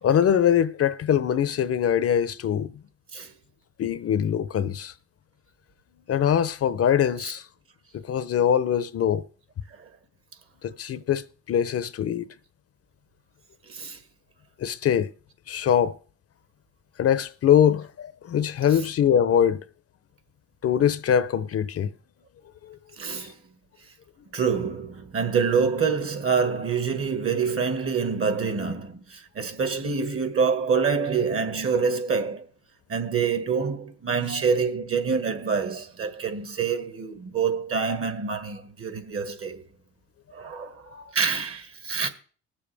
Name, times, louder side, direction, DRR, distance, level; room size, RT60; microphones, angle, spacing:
voice 1, 0.0-2.7 3.8-4.9 6.1-7.4 8.1-9.2 10.6-12.3 14.6-15.1 15.5-16.0 17.0-19.6 20.6-21.9 22.7-22.8, left 9 dB, 50° left, 0.7 m, -22 dB
voice 2, 13.7-14.0 23.0-23.4 24.3-32.5 32.9-39.6 40.3-42.1, right 5 dB, 45° right, 1.8 m, -26 dB
20.0 x 7.1 x 3.4 m
cardioid pair, 90°, 30 cm